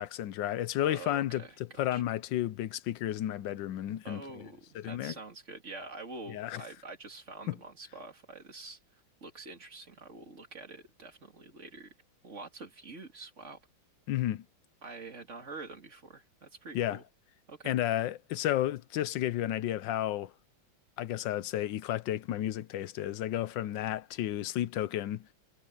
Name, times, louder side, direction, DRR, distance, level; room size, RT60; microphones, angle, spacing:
voice 1, 0.0-4.5 4.7-5.1 6.3-6.6 7.5-7.6 14.1-14.4 16.7-17.0 17.6-20.3 21.0-25.3, left 12 dB, 75° left, 1.3 m, -32 dB
voice 2, 0.8-2.0 4.0-8.8 9.2-11.9 12.2-13.6 14.8-17.0 17.5-17.8, right 3 dB, 35° right, 2.9 m, -46 dB
omnidirectional pair, 2.1 m